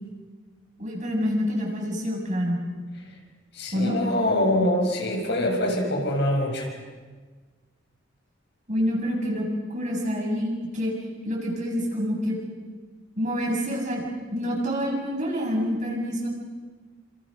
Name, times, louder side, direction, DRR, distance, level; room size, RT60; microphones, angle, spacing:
voice 1, 0.8-2.6 3.7-4.0 8.7-10.9 11.2-12.4 13.2-14.1 14.3-16.3, equal, 40° right, -1 dB, 7.4 m, -27 dB
voice 2, 3.5-6.7, left 1 dB, 60° left, 1 dB, 6.6 m, -24 dB
30.0 x 27.5 x 6.6 m, 1.4 s
head